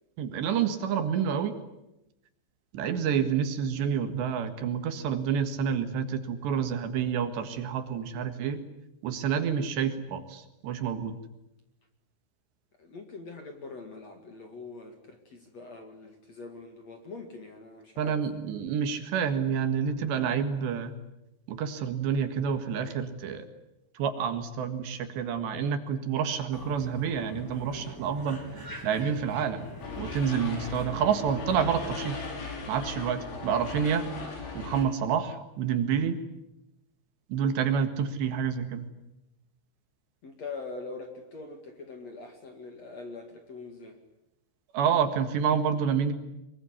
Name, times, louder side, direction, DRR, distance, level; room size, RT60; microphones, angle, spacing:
voice 1, 0.2-1.6 2.7-8.6 9.0-11.2 18.0-20.9 21.5-23.5 24.0-28.4 28.8-29.7 30.0-32.3 32.7-34.1 34.6-36.2 37.3-38.9 44.7-46.1, right 7 dB, 70° right, 8 dB, 3.8 m, -28 dB
voice 2, 12.8-18.2 40.2-44.0, left 3 dB, 45° left, 5 dB, 2.7 m, -43 dB
sound 1, 26.5-31.9, equal, 5° left, 3.3 m, -44 dB
sound 2, 29.8-34.9, left 3 dB, 75° left, 7.1 m, -38 dB
24.0 x 23.5 x 9.9 m, 0.91 s
omnidirectional pair, 5.4 m